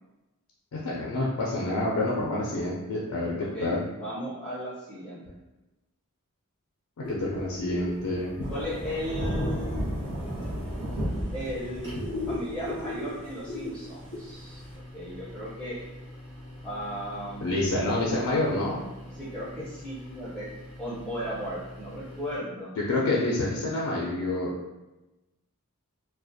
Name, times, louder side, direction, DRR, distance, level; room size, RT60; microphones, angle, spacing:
voice 1, 0.8-3.8 7.0-8.3 17.4-18.8 22.9-24.5, left 2 dB, 80° left, -4 dB, 0.4 m, -28 dB
voice 2, 3.4-3.7 4.0-5.2 8.5-9.8 11.3-14.6 14.9-15.8 16.6-17.9 19.1-20.5 20.8-22.7, equal, 5° left, -11 dB, 0.5 m, -36 dB
sound 1, 7.0-22.4, left 1 dB, 20° right, 1.0 m, -41 dB
Thunder / Rain, 8.4-14.7, equal, 60° right, 1.2 m, -33 dB
2.3 x 2.1 x 2.6 m, 1.0 s
head